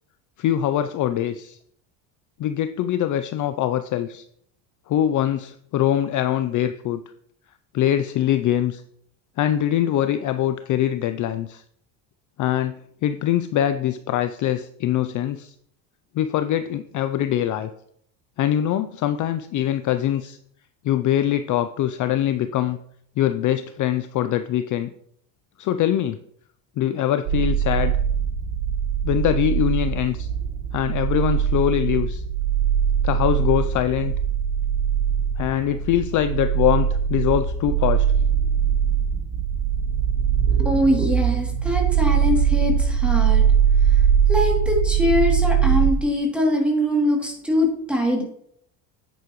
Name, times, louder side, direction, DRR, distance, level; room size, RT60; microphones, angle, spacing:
voice 1, 0.4-1.6 2.4-4.2 4.9-7.0 7.7-8.8 9.4-11.6 12.4-15.5 16.1-17.7 18.4-20.4 20.8-22.8 23.2-24.9 25.6-26.2 26.8-28.0 29.0-30.3 30.7-32.2 33.0-34.1 35.4-38.1, left 11 dB, 45° left, 10 dB, 0.5 m, -23 dB
sound 1, 27.2-45.9, right 8 dB, 75° right, 3.8 m, -21 dB
voice 2, 40.5-43.4 43.8-48.2, left 1 dB, ahead, 0 dB, 2.8 m, -23 dB
9.6 x 8.8 x 3.1 m, 0.67 s
cardioid pair, 120°, 45 cm